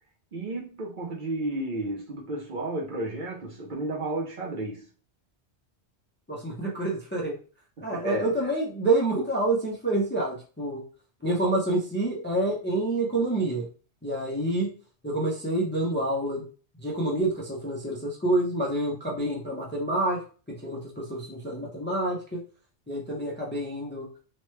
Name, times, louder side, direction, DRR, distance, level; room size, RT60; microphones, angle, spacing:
voice 1, 0.3-4.9 7.8-8.3, right 2 dB, 55° right, 0.8 m, -32 dB
voice 2, 6.3-7.3 7.8-10.8 11.2-13.7 14.0-14.7 15.0-16.4 16.7-20.2 20.5-22.4 22.9-24.1, right 2 dB, 15° left, 0.5 m, -27 dB
3.0 x 2.2 x 3.1 m
omnidirectional pair, 1.1 m